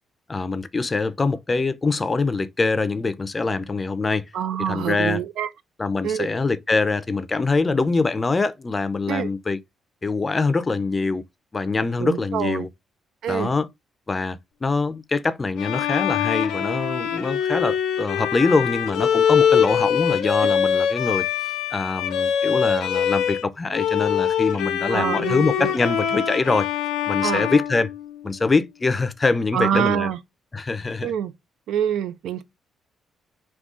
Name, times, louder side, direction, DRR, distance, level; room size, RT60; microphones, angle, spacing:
voice 1, 0.3-4.3 4.7-5.2 5.8-9.6 10.0-11.2 11.5-12.7 13.3-13.7 14.1-26.7 27.0-27.9 28.2-30.1 30.5-31.1, left 3 dB, 25° left, 0.4 m, -24 dB
voice 2, 4.3-5.5 6.0-6.3 9.1-9.3 12.0-12.7 13.2-13.5 20.4-20.5 24.9-25.7 27.2-27.5 29.5-30.2 31.0-31.3 31.7-32.4, right 9 dB, 80° right, 0.4 m, -25 dB
Bowed string instrument, 15.6-23.4 23.7-28.5, left 8 dB, 90° left, 0.6 m, -23 dB
3.7 x 2.3 x 3.7 m
cardioid pair, 90°, 0 cm